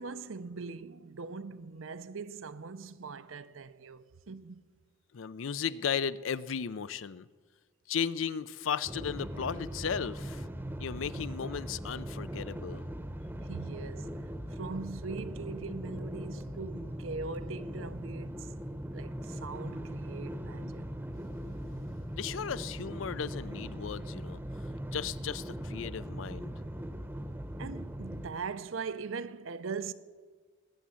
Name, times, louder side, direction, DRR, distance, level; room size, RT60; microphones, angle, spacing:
voice 1, 0.0-4.6 13.4-18.5 18.9-20.9 27.6-29.9, right 4 dB, 85° right, 0.7 m, -41 dB
voice 2, 5.1-7.3 7.9-10.5 10.8-12.9 22.1-24.4 24.9-26.5, left 7 dB, 75° left, 0.5 m, -35 dB
sound 1, 8.8-28.3, equal, 10° right, 0.8 m, -40 dB
20.0 x 7.4 x 8.4 m
head